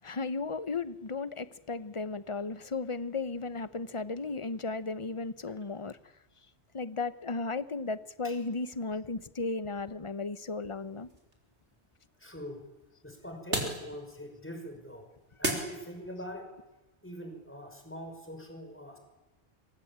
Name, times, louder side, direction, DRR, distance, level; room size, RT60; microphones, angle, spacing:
voice 1, 0.0-6.0 6.7-11.1, left 3 dB, 30° left, 1.0 m, -35 dB
sound 1, 10.2-16.3, right 1 dB, 85° right, 4.9 m, -40 dB
voice 2, 12.2-12.6 13.0-15.0 15.4-16.5 17.0-19.0, equal, 10° left, 5.8 m, -42 dB
26.5 x 24.0 x 8.9 m
omnidirectional pair, 1.1 m